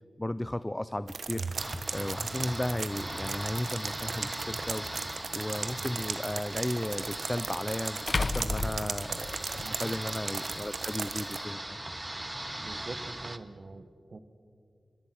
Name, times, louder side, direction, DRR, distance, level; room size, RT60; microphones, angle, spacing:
voice 1, 0.2-1.5 1.9-4.8 5.3-11.8, left 1 dB, 15° left, 15 dB, 0.5 m, -35 dB
sound 1, 1.1-11.4, right 4 dB, 75° right, 1.4 m, -37 dB
sound 2, 1.6-13.4, right 1 dB, 20° right, 1.1 m, -39 dB
sound 3, 4.2-4.3 6.9-7.0 8.1-9.7, left 3 dB, 55° left, 0.8 m, -31 dB
voice 2, 9.6-10.0 12.2-14.2, right 3 dB, 55° right, 11 dB, 1.4 m, -45 dB
25.5 x 22.5 x 6.2 m, 2.5 s
wide cardioid pair, 70°, 0 cm